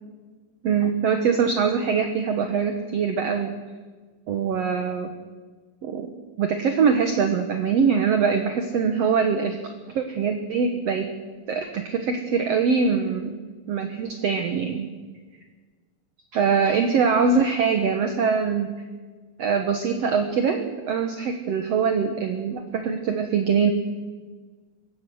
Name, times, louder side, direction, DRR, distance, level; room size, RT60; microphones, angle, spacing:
voice 1, 0.6-3.5 4.3-5.1 5.8-6.1 6.4-9.6 9.9-11.1 11.5-13.3 13.7-14.9 16.3-18.7 19.4-23.7, right 6 dB, 60° right, 6 dB, 2.0 m, -23 dB
23.5 x 18.0 x 6.4 m, 1.4 s
omnidirectional pair, 3.9 m